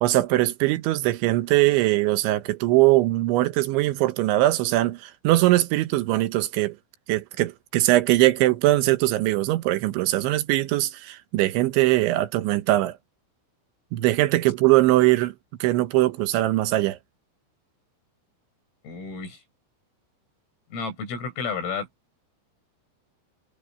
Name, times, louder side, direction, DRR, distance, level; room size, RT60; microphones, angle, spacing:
voice 1, 0.0-6.8 7.1-13.0 13.9-15.3 15.6-17.0, right 17 dB, 75° right, 3.1 m, -21 dB
voice 2, 18.8-19.4 20.7-21.9, left 5 dB, 85° left, 9.2 m, -31 dB
omnidirectional pair, 5.8 m